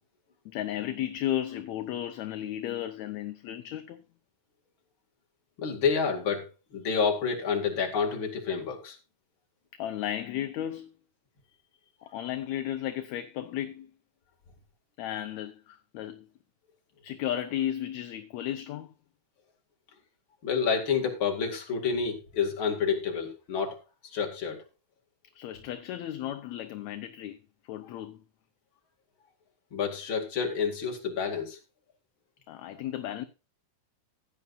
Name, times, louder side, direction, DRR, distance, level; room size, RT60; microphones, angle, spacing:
voice 1, 0.5-4.0 9.8-10.9 12.0-13.9 15.0-16.3 17.0-18.9 25.4-27.4 27.7-28.2 32.5-33.3, left 11 dB, 75° left, 2.0 m, -34 dB
voice 2, 5.6-9.0 20.4-23.8 24.1-24.6 29.7-31.6, left 6 dB, 45° left, 2.9 m, -29 dB
16.0 x 9.8 x 2.6 m
omnidirectional pair, 3.5 m